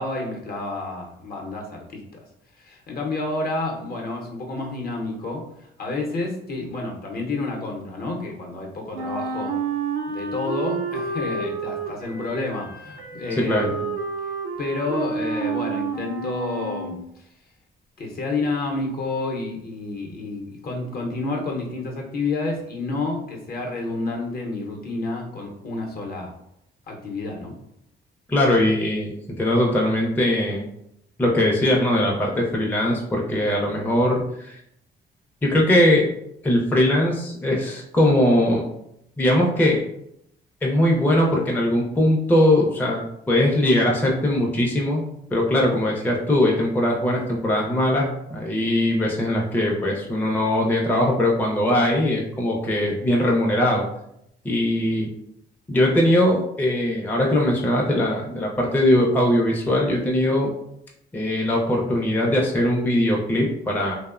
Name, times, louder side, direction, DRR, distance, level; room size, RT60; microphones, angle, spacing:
voice 1, 0.0-2.0 2.6-9.6 10.1-13.9 14.6-17.0 18.0-26.4 26.9-27.6, left 2 dB, 50° left, 1 dB, 0.7 m, -29 dB
Wind instrument woodwind instrument, 8.9-17.0, right 4 dB, 90° right, 0.4 m, -30 dB
voice 2, 28.3-30.6 31.2-34.6 35.4-36.1 36.4-38.6 39.2-39.8 40.6-45.0 45.3-53.8 54.4-55.1 55.7-60.5 61.1-64.0, left 1 dB, 10° left, -1 dB, 0.4 m, -20 dB
2.9 x 2.0 x 2.4 m, 0.76 s
cardioid pair, 90°, 20 cm